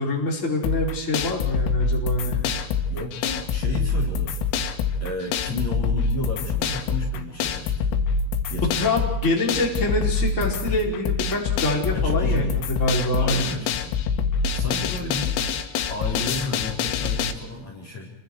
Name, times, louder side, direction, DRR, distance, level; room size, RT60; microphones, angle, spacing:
voice 1, 0.0-2.6 8.8-12.5 12.8-13.5, left 1 dB, 15° left, -1 dB, 4.7 m, -25 dB
sound 1, 0.6-17.3, left 5 dB, 85° left, 4.3 m, -25 dB
voice 2, 2.9-4.4 5.0-7.9 8.5-8.9 11.9-12.5 13.2-14.0 14.5-15.4 15.9-18.1, left 2 dB, 35° left, 0 dB, 4.9 m, -32 dB
29.0 x 24.0 x 4.8 m, 0.95 s
omnidirectional pair, 5.8 m